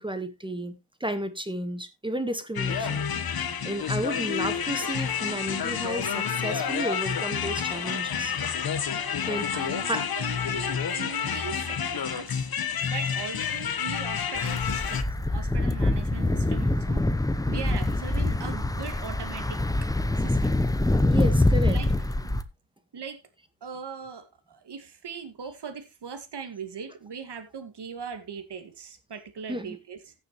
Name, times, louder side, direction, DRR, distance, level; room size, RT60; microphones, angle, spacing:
voice 1, 0.0-3.0 3.6-8.3 9.2-10.0 21.0-21.8 29.5-29.8, right 1 dB, 10° right, 1.4 m, -32 dB
sound 1, 2.5-15.0, left 7 dB, 45° left, 1.3 m, -29 dB
voice 2, 9.5-12.5 12.8-15.0 15.3-17.0 17.5-19.9 20.2-20.5 21.6-21.9 22.2-22.4 22.9-23.2 23.6-30.1, right 6 dB, 55° right, 2.3 m, -40 dB
sound 2, 14.4-22.4, left 2 dB, 5° left, 0.8 m, -25 dB
16.0 x 6.8 x 3.1 m
cardioid pair, 95°, 49 cm